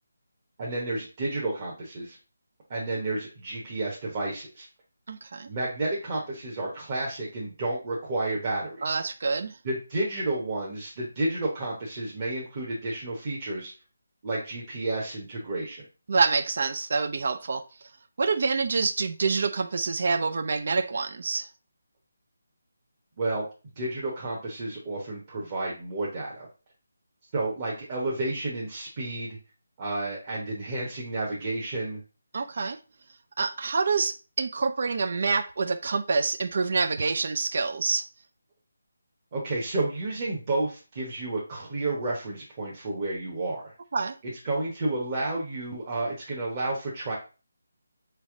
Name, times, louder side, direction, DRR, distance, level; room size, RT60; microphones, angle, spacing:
voice 1, 0.6-2.2 2.7-4.7 5.5-9.0 9.6-13.7 14.2-15.8 23.2-23.4 23.8-26.5 27.3-29.4 29.8-32.0 39.3-43.7 44.4-47.1, right 2 dB, 30° right, 1.0 m, -31 dB
voice 2, 5.1-5.5 8.8-9.6 16.1-17.7 18.2-21.5 32.3-32.8 33.4-38.1 43.9-44.1, right 4 dB, 50° right, 0.4 m, -26 dB
4.2 x 3.4 x 3.6 m
figure-of-eight pair, 165°, 0 cm